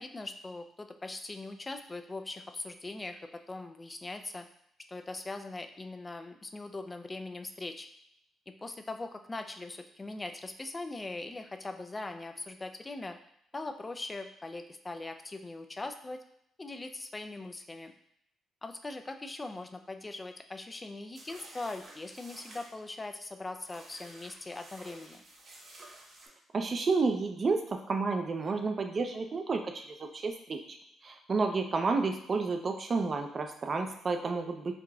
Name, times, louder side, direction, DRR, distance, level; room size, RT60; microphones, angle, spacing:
voice 1, 0.0-4.5 4.9-7.9 8.5-13.2 13.5-16.2 16.6-17.9 18.6-25.2, left 2 dB, 20° left, 7 dB, 0.3 m, -41 dB
sound 1, 21.1-22.7 23.6-26.3, right 1 dB, 55° right, 1.0 m, -52 dB
voice 2, 26.5-30.8 31.0-34.7, right 4 dB, 40° right, 5 dB, 0.5 m, -31 dB
4.8 x 2.5 x 2.3 m, 0.75 s
cardioid pair, 90°, 0 cm